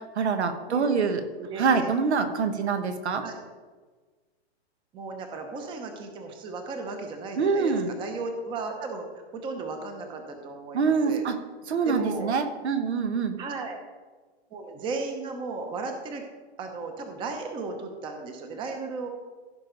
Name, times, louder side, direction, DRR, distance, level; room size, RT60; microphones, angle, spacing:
voice 1, 0.1-1.2 1.6-3.2 7.4-7.9 10.7-11.4 11.7-13.4, right 5 dB, 80° right, 7 dB, 1.4 m, -25 dB
voice 2, 1.4-1.9 3.2-3.4 4.9-9.1 9.4-11.2 11.8-12.3 13.4-13.8 14.5-16.2 16.6-19.1, right 3 dB, 15° right, 4 dB, 0.9 m, -35 dB
15.5 x 5.2 x 4.0 m, 1.4 s
hypercardioid pair, 155°, 33 cm